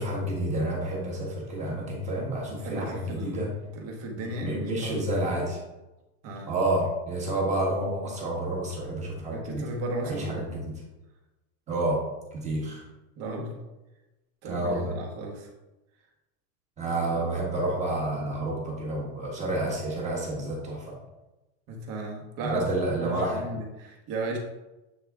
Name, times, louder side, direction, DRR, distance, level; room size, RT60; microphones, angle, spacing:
voice 1, 0.0-3.5 4.2-5.6 6.5-9.6 10.0-10.7 11.7-12.0 12.3-12.8 14.4-14.9 16.8-21.0 22.4-23.4, right 1 dB, 20° right, -3 dB, 1.4 m, -29 dB
voice 2, 2.5-5.4 6.2-6.5 9.3-10.4 13.2-13.6 14.4-15.5 21.7-24.4, right 2 dB, 40° right, 1 dB, 1.2 m, -35 dB
7.7 x 3.6 x 3.5 m, 1.0 s
supercardioid pair, 165°, 37 cm